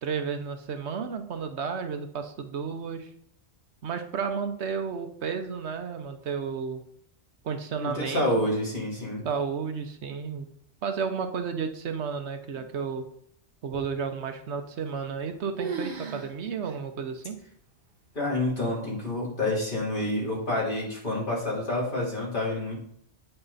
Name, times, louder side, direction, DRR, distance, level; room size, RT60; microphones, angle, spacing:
voice 1, 0.0-3.1 3.8-6.8 7.4-8.3 9.2-10.5 10.8-13.0 13.6-17.4, right 6 dB, 75° right, 7 dB, 1.1 m, -32 dB
voice 2, 7.8-9.3 18.2-22.7, left 1 dB, 45° left, -5 dB, 3.4 m, -28 dB
sound 1, 14.8-15.3 15.6-16.3 16.6-16.8 17.4-17.5 18.3-18.6, right 4 dB, 55° right, 1.2 m, -35 dB
8.8 x 5.9 x 4.1 m, 0.68 s
omnidirectional pair, 1.2 m